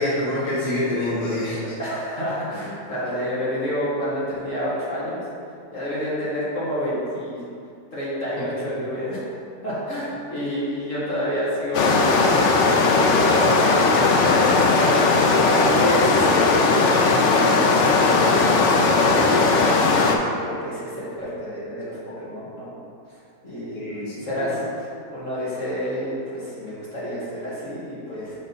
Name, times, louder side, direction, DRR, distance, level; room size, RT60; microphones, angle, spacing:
voice 1, 0.0-1.6 15.8-15.9 23.7-24.6, left 1 dB, 25° left, -9 dB, 1.4 m, -26 dB
voice 2, 1.8-5.2 5.7-7.4 7.9-9.2 9.6-13.9 14.2-15.1 15.5-16.4 17.3-19.8 20.2-22.7 23.4-28.4, equal, 50° left, -9 dB, 1.9 m, -29 dB
sound 1, 11.7-20.2, left 3 dB, 75° left, 0.6 m, -18 dB
7.2 x 4.3 x 4.0 m, 2.4 s
omnidirectional pair, 1.9 m